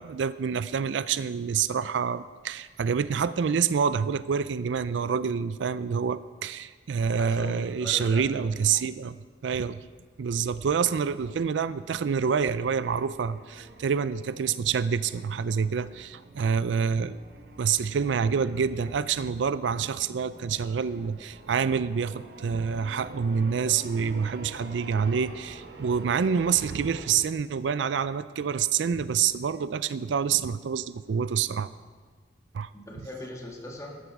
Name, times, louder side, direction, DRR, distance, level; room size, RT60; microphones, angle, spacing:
voice 1, 0.0-9.2 9.4-9.8 10.2-17.2 17.6-31.7 32.5-32.7, right 6 dB, 85° right, 15 dB, 0.4 m, -27 dB
voice 2, 7.2-8.5 32.7-34.0, left 1 dB, 20° left, 0 dB, 1.9 m, -40 dB
sound 1, 11.2-27.1, right 2 dB, 60° right, 1.3 m, -47 dB
13.0 x 13.0 x 4.8 m, 1.5 s
head